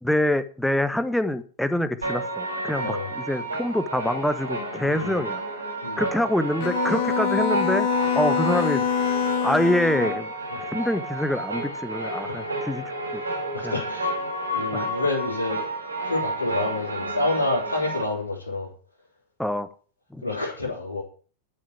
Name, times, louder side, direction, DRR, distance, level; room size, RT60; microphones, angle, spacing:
voice 1, 0.0-5.4 6.0-7.9 8.1-8.8 9.4-10.3 10.6-12.8 13.1-13.2 13.6-13.7 14.7-14.9 19.4-19.7 20.1-20.2, left 1 dB, 5° left, 13 dB, 1.0 m, -25 dB
sound 1, 2.0-18.0, right 2 dB, 80° right, 4.2 m, -31 dB
voice 2, 2.8-3.1 4.8-5.2 5.8-6.0 12.3-12.4 13.2-14.2 14.5-15.7 16.0-18.7 20.2-21.0, left 2 dB, 80° left, -4 dB, 3.4 m, -28 dB
Bowed string instrument, 6.6-10.2, left 9 dB, 45° left, 1.7 m, -25 dB
12.0 x 6.3 x 8.5 m, 0.41 s
figure-of-eight pair, 90°, 0 cm